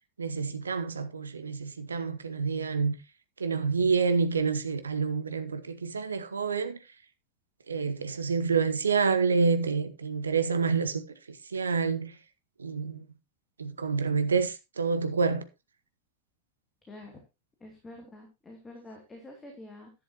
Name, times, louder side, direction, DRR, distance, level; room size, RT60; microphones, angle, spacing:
voice 1, 0.2-2.9 3.4-6.8 7.7-12.2 12.6-13.0 13.6-15.5, right 5 dB, 75° right, 1.1 m, -28 dB
voice 2, 16.9-17.2 17.6-19.9, left 1 dB, 15° left, 2.7 m, -47 dB
11.0 x 10.5 x 2.9 m
figure-of-eight pair, 90°, 0 cm